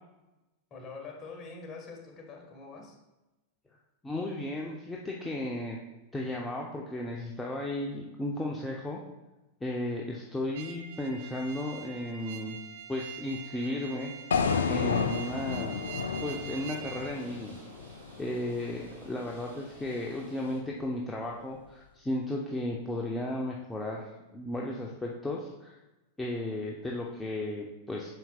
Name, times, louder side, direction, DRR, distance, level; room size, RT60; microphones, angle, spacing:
voice 1, 0.7-3.0, left 4 dB, 30° left, 1 dB, 1.6 m, -44 dB
voice 2, 4.0-5.8 6.1-9.0 9.6-12.6 12.9-15.8 16.2-17.6 18.2-25.8 26.2-28.1, left 1 dB, 10° left, -2 dB, 0.8 m, -35 dB
sound 1, 10.5-17.2, right 8 dB, 50° right, 0.6 m, -44 dB
sound 2, 14.3-18.4, left 6 dB, 65° left, 0.4 m, -31 dB
sound 3, 14.6-20.6, equal, 75° right, 2.3 m, -51 dB
8.9 x 6.0 x 2.4 m, 1.0 s
figure-of-eight pair, 90°, 0 cm